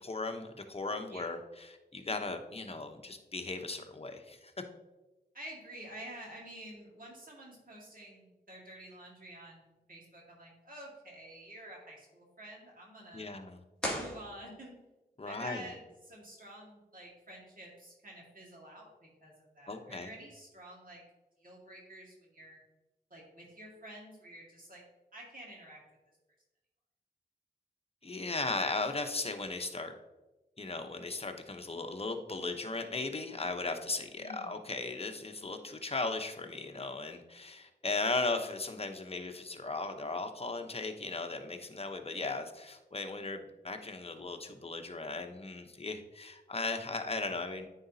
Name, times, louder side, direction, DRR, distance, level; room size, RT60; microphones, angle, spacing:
voice 1, 0.0-4.5 13.1-13.6 15.2-15.7 19.7-20.1 28.0-29.9 30.6-47.7, left 3 dB, 35° left, 6 dB, 0.8 m, -37 dB
voice 2, 5.3-13.4 13.9-14.7 15.3-21.0 21.4-22.6 23.1-24.8 25.1-25.8 34.2-34.6, right 1 dB, 50° right, -3 dB, 1.9 m, -49 dB
sound 1, 13.8-15.0, equal, 5° left, 2.1 m, -38 dB
9.2 x 4.0 x 2.8 m, 1.0 s
cardioid pair, 40°, 18 cm